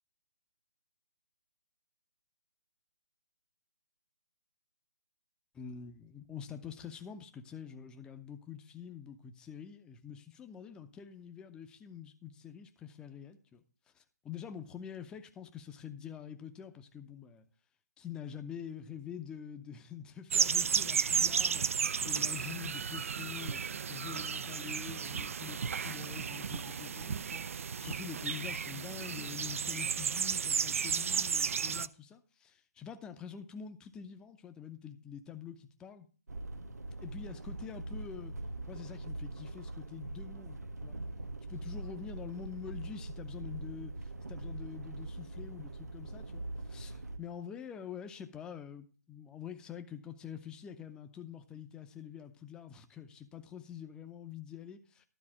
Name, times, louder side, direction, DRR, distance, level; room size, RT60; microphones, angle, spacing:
voice 1, 5.5-13.6 13.9-17.5 18.0-21.7 22.0-23.6 23.9-36.1 37.0-38.3 38.7-41.0 41.5-55.0, left 8 dB, 10° left, 0.6 m, -46 dB
sound 1, 20.3-31.9, right 6 dB, 55° right, 0.4 m, -33 dB
sound 2, 36.3-47.2, right 2 dB, 80° right, 1.2 m, -42 dB
12.0 x 4.1 x 7.4 m
figure-of-eight pair, 145°, 9 cm